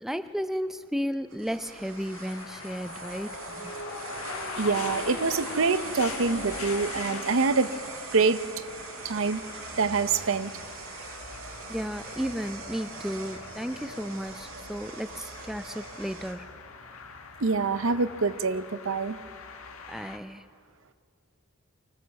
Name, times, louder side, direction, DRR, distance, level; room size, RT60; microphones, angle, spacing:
voice 1, 0.0-3.8 11.7-16.5 19.9-20.4, equal, ahead, 10 dB, 0.4 m, -34 dB
sound 1, 1.3-16.3, right 4 dB, 90° right, 3.4 m, -42 dB
sound 2, 1.6-20.2, left 4 dB, 85° left, 1.7 m, -41 dB
voice 2, 4.6-7.7 8.1-8.4 9.0-9.4 9.8-10.5 17.4-19.2, right 4 dB, 70° right, 13 dB, 0.7 m, -25 dB
24.5 x 15.5 x 7.1 m, 2.3 s
head